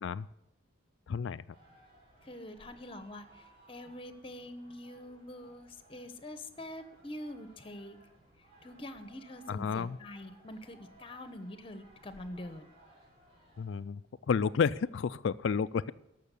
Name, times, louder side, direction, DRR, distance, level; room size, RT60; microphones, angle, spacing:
voice 1, 1.1-1.4 9.5-10.0 13.6-14.0 14.3-15.9, left 6 dB, 60° left, 16 dB, 0.3 m, -31 dB
sound 1, 1.5-13.8, right 1 dB, 30° right, 5.8 m, -61 dB
voice 2, 2.2-8.0 8.6-12.7, left 1 dB, 25° left, 11 dB, 1.0 m, -45 dB
13.5 x 6.3 x 8.3 m, 0.84 s
head